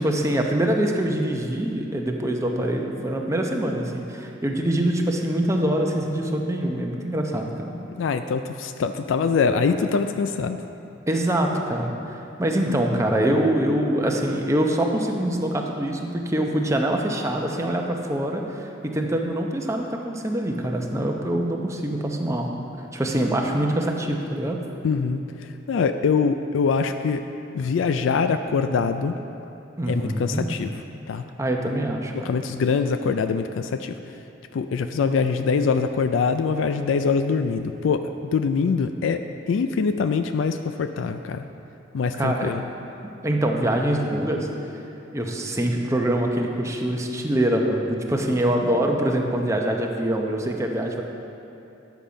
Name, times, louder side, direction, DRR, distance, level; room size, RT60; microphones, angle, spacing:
voice 1, 0.0-7.8 11.1-22.5 22.9-24.6 29.8-30.4 31.4-32.3 42.1-42.5 43.2-44.5 45.1-51.0, right 1 dB, 15° right, 1 dB, 0.7 m, -24 dB
voice 2, 7.9-10.6 24.8-25.2 25.7-27.2 27.5-29.2 29.9-30.7 31.1-31.2 32.1-34.0 34.5-38.0 38.3-39.2 39.5-41.4 41.9-42.6, left 5 dB, 85° left, 8 dB, 0.4 m, -23 dB
10.0 x 7.1 x 5.1 m, 2.9 s
head